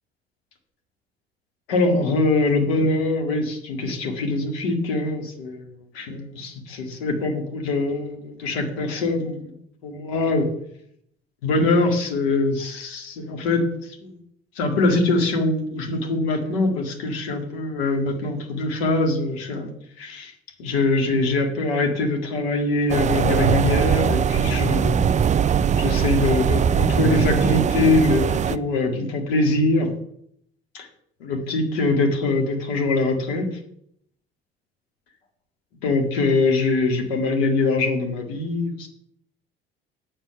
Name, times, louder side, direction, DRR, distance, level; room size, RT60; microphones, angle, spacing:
voice 1, 1.7-9.5 9.8-10.5 11.4-14.2 14.6-20.3 20.6-25.1 25.8-29.9 30.7-30.9 31.2-33.6 35.8-38.9, left 2 dB, 70° left, 3 dB, 2.0 m, -23 dB
sound 1, 22.9-28.6, right 7 dB, 25° right, 0.4 m, -21 dB
8.6 x 7.4 x 6.9 m, 0.72 s
figure-of-eight pair, 55°, 31 cm